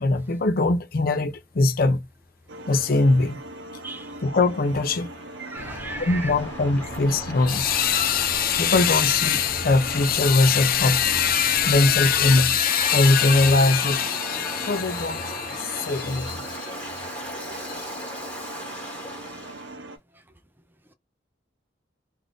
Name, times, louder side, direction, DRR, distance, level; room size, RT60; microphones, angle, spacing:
voice 1, 0.0-2.0 2.7-3.4 4.2-5.1 6.0-16.7 17.7-17.8, left 4 dB, 50° left, 0.5 m, -21 dB
sound 1, 2.5-20.0, right 2 dB, 75° right, 0.6 m, -41 dB
Waves surf, 4.0-19.7, equal, 10° left, 1.1 m, -38 dB
voice 2, 5.4-6.3 16.5-16.7, right 2 dB, 10° right, 0.4 m, -37 dB
sound 2, 5.5-12.4, left 1 dB, 75° left, 0.9 m, -38 dB
2.5 x 2.5 x 3.4 m
head